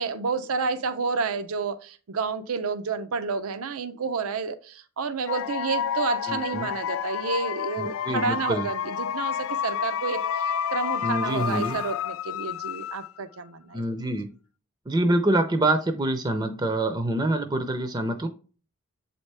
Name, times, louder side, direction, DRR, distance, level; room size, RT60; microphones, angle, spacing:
voice 1, 0.0-13.8, right 4 dB, 80° right, 11 dB, 0.6 m, -30 dB
sound 1, 5.3-13.4, left 8 dB, 70° left, 0.3 m, -30 dB
voice 2, 6.3-6.7 7.8-8.7 11.0-11.8 13.7-14.3 14.9-18.3, right 1 dB, 20° right, 7 dB, 0.5 m, -26 dB
8.0 x 4.2 x 3.3 m, 0.37 s
head